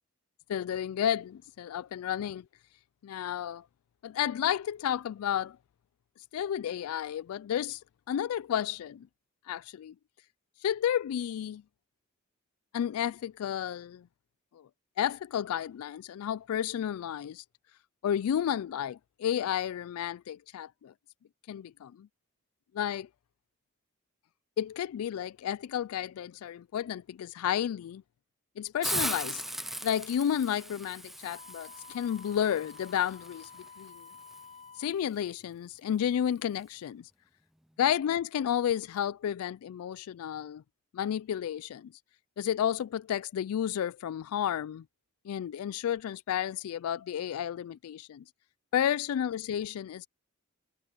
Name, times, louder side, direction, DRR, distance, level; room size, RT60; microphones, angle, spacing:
voice 1, 0.5-2.4 3.0-3.6 4.0-5.6 6.3-7.8 8.1-9.1 9.5-9.9 10.6-11.6 12.7-14.0 15.0-17.4 18.0-20.9 21.5-22.1 22.7-23.1 24.6-28.0 28.6-33.5 33.8-34.0 34.8-37.1 37.8-40.6 40.9-41.9 42.4-44.8 45.3-48.2 48.7-50.1, left 9 dB, 85° left, 0.3 m, -32 dB
Hiss, 28.8-34.4, right 1 dB, ahead, 0.4 m, -38 dB
Wind instrument woodwind instrument, 31.2-35.0, left 5 dB, 35° left, 4.2 m, -51 dB
head